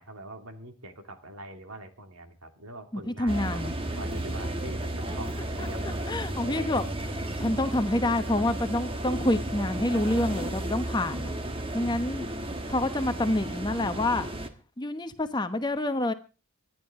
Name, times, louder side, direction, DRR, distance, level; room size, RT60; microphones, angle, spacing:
voice 1, 0.0-3.6 4.0-5.8 6.5-6.7, right 1 dB, 80° right, 2.6 m, -43 dB
voice 2, 2.9-3.7 5.6-6.8 7.1-11.3 11.7-12.3 12.7-14.3 14.8-16.1, left 1 dB, 20° left, 1.0 m, -28 dB
sound 1, 3.3-14.5, right 1 dB, 25° right, 1.4 m, -33 dB
25.0 x 10.5 x 3.7 m
head